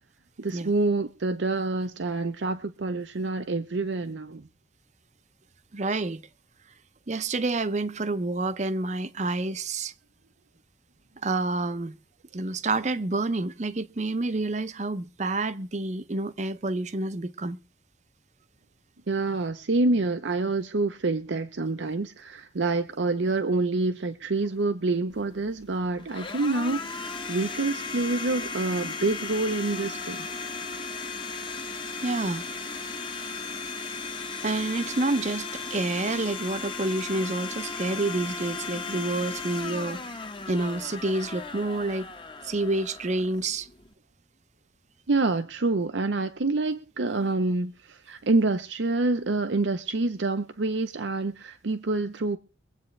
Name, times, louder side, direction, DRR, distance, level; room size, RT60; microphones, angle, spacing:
voice 1, 0.4-4.5 19.1-30.3 45.1-52.4, right 3 dB, 75° right, 0.7 m, -27 dB
voice 2, 5.7-6.2 7.1-9.9 11.2-11.9 12.3-17.6 32.0-32.4 34.4-42.1 42.4-43.7, right 2 dB, 40° right, 0.6 m, -28 dB
Domestic sounds home sounds, 25.1-43.9, left 4 dB, 25° left, 1.0 m, -36 dB
23.5 x 8.2 x 3.3 m
head